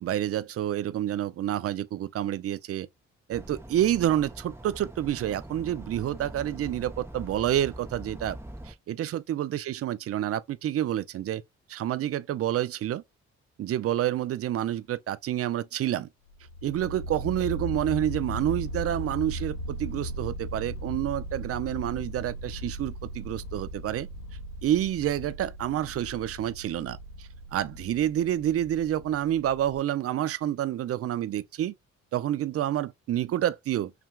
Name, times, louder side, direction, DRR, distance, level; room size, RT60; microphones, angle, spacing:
voice 1, 0.0-2.9 3.3-8.4 8.7-11.4 11.7-13.0 13.6-16.1 16.6-24.1 24.6-31.7 32.1-33.9, right 12 dB, 50° right, 0.5 m, -28 dB
sound 1, 3.3-8.7, right 1 dB, 10° right, 0.7 m, -43 dB
sound 2, 16.3-29.8, right 1 dB, 45° left, 1.1 m, -37 dB
5.9 x 2.2 x 2.3 m
cardioid pair, 90°, 30 cm